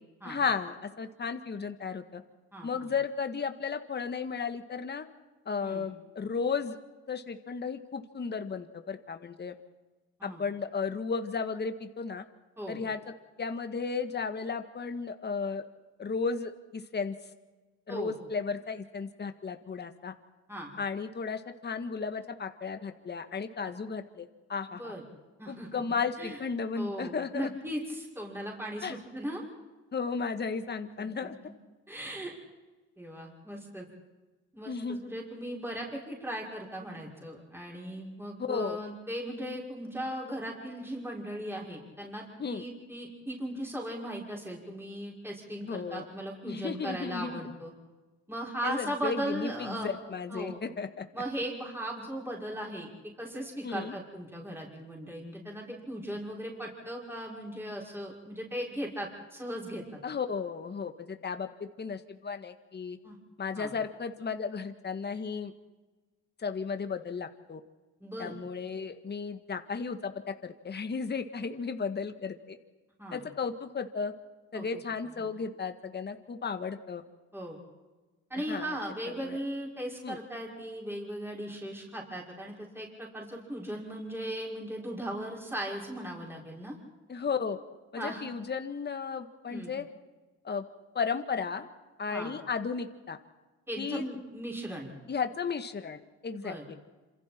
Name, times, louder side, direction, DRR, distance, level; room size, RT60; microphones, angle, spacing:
voice 1, 0.2-2.2 2.6-5.0 5.4-6.8 7.1-9.5 10.2-12.2 12.7-13.0 13.4-15.6 16.0-17.1 17.9-20.1 20.8-24.9 25.5-27.5 28.8-29.0 29.9-31.4 34.7-35.0 38.4-38.8 42.4-42.6 45.7-46.0 46.5-47.4 48.6-51.0 53.6-53.9 60.0-63.0 63.4-65.5 66.4-67.6 68.2-72.6 73.1-74.1 74.5-77.0 78.5-78.8 79.2-79.4 80.0-80.2 87.1-87.6 87.9-89.8 90.4-90.6 90.9-91.7 92.0-93.2 93.8-94.1 95.1-96.8, left 5 dB, 35° left, 8 dB, 1.7 m, -34 dB
voice 2, 2.5-2.9 5.6-5.9 10.2-10.4 12.6-12.8 17.9-18.1 20.5-20.7 23.6-23.7 24.7-25.0 25.4-25.8 26.2-26.4 26.8-29.4 30.9-31.5 31.9-32.3 33.0-33.9 34.5-47.7 48.3-50.0 50.3-50.6 51.1-52.9 53.2-59.8 63.0-63.2 63.5-63.7 68.0-68.3 73.0-73.2 74.5-74.7 75.2-75.3 77.3-77.6 78.3-86.8 88.0-88.2 89.5-89.7 92.1-92.3 93.7-94.9 96.3-96.6, right 1 dB, 10° right, -3 dB, 6.1 m, -38 dB
27.5 x 27.0 x 4.5 m, 1.2 s
cardioid pair, 90°, 30 cm